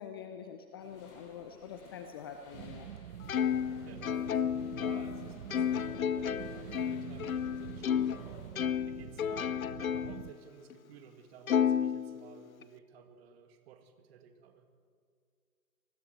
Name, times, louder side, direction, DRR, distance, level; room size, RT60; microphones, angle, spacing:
voice 1, 0.0-2.9, left 7 dB, 15° left, 7 dB, 0.5 m, -45 dB
sound 1, 0.8-8.5, left 3 dB, 35° left, 6.6 m, -56 dB
sound 2, 2.5-10.3, right 10 dB, 65° right, 0.6 m, -46 dB
Plucked string instrument, 3.3-8.2 8.6-10.3 10.7-10.8 11.5-12.6, left 8 dB, 60° left, 0.8 m, -32 dB
voice 2, 3.8-8.5 8.8-14.7, right 7 dB, 40° right, 7 dB, 2.1 m, -54 dB
29.0 x 20.0 x 4.6 m, 2.2 s
figure-of-eight pair, 115°, 47 cm